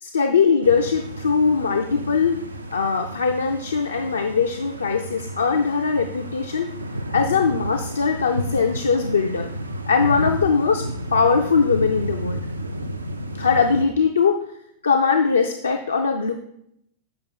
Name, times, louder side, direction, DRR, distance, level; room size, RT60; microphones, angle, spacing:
voice 1, 0.0-2.4 2.7-6.7 7.1-9.5 9.9-12.4 13.3-14.4 14.8-16.3, left 5 dB, 75° left, 4 dB, 0.4 m, -21 dB
sound 1, 0.6-13.8, equal, 80° right, 0.4 m, -31 dB
7.5 x 5.2 x 4.3 m, 0.73 s
figure-of-eight pair, 90°, 0 cm